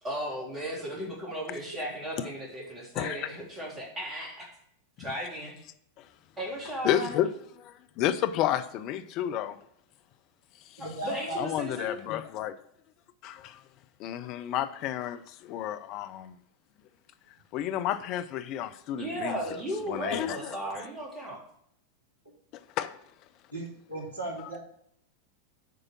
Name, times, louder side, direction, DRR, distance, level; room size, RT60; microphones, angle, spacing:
voice 1, 0.0-4.5 5.0-5.6 6.4-7.2 10.8-12.0 19.0-21.4, equal, 20° right, 3.4 m, -35 dB
voice 2, 3.0-3.3 6.0-6.1 6.8-7.3 7.6-9.6 10.7-10.8 11.4-12.6 13.2-13.6 14.0-16.3 17.5-19.6 19.9-20.5 22.8-23.0, left 11 dB, 40° left, 0.5 m, -31 dB
voice 3, 10.8-11.4 23.5-24.6, right 1 dB, 85° left, 3.1 m, -36 dB
8.4 x 5.0 x 6.0 m
figure-of-eight pair, 90°, 0 cm